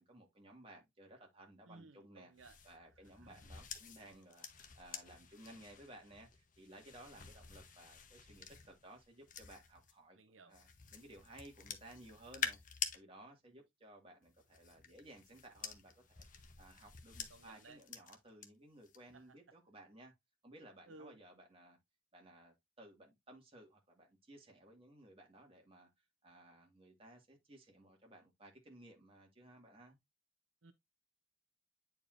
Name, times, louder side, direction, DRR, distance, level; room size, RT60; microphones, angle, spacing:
voice 1, 0.0-2.3 2.6-10.2 10.4-16.2 16.6-20.1 20.4-21.8 22.1-25.9 26.2-30.0, right 1 dB, 30° right, 1.9 m, -58 dB
voice 2, 1.6-2.6 3.0-3.1 10.1-10.6 17.3-17.8 19.1-19.4 20.9-21.2 30.6-30.7, right 3 dB, 75° right, 0.8 m, -58 dB
sound 1, 2.4-9.9 10.5-13.0 14.2-18.5 18.8-19.2, left 7 dB, 40° left, 0.9 m, -48 dB
8.6 x 4.7 x 2.5 m
head